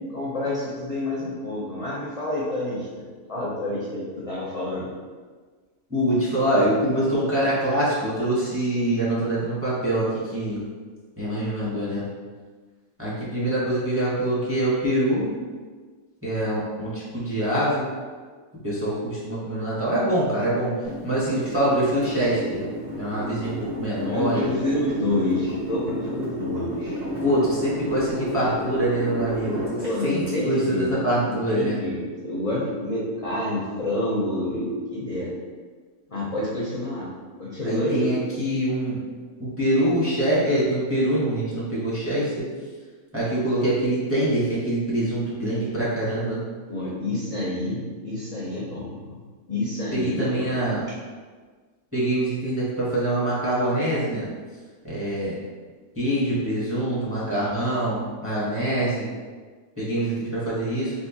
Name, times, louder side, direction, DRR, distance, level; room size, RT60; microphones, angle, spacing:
voice 1, 0.1-3.0 3.3-4.9 24.0-27.0 29.8-30.9 31.2-35.3 36.1-37.1 37.4-38.4 46.7-49.2 49.5-50.5, left 1 dB, 50° left, -7 dB, 0.4 m, -28 dB
voice 2, 5.9-10.1 10.3-10.6 11.2-12.0 13.0-15.3 16.2-17.8 18.6-20.7 21.0-22.6 22.9-24.5 27.2-31.8 37.6-39.1 39.4-42.5 43.1-46.4 49.9-50.8 51.9-54.3 54.8-55.4 56.0-59.1 59.8-60.9, right 1 dB, 15° right, -8 dB, 0.6 m, -24 dB
sound 1, 20.8-30.3, equal, 70° right, 1.9 m, -32 dB
3.5 x 2.6 x 2.7 m, 1.4 s
omnidirectional pair, 1.5 m